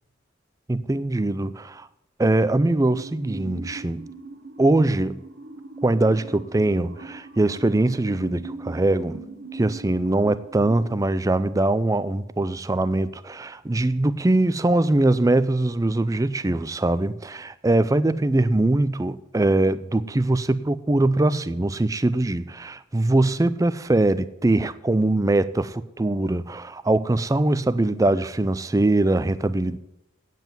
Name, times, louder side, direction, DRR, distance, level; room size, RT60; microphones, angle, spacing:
voice 1, 0.7-1.9 2.2-4.1 4.6-5.2 5.8-9.2 9.5-29.8, right 2 dB, 15° right, 0.4 m, -22 dB
sound 1, 2.6-11.0, right 3 dB, 55° right, 1.0 m, -40 dB
9.2 x 8.0 x 9.1 m
head